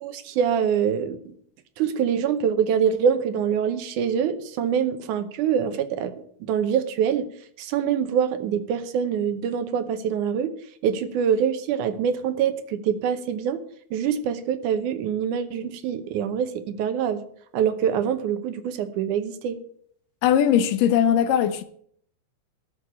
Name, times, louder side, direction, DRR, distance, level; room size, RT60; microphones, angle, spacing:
voice 1, 0.0-1.2 1.8-6.1 6.4-7.3 7.6-10.5 10.8-13.6 13.9-17.2 17.5-19.6, right 8 dB, 75° right, 2.3 m, -24 dB
voice 2, 20.2-21.6, left 9 dB, 90° left, 2.6 m, -19 dB
13.0 x 6.5 x 8.6 m
omnidirectional pair, 3.7 m